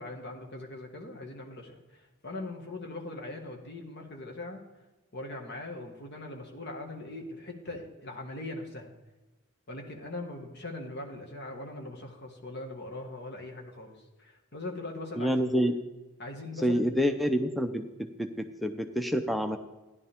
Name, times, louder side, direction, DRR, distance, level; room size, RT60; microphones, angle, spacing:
voice 1, 0.0-4.6 5.1-8.9 9.7-15.4 16.2-17.1, left 2 dB, 50° left, 2 dB, 1.7 m, -41 dB
voice 2, 15.2-15.7 16.6-17.9 18.2-19.6, equal, ahead, 6 dB, 0.6 m, -27 dB
14.0 x 11.0 x 3.6 m, 1.1 s
head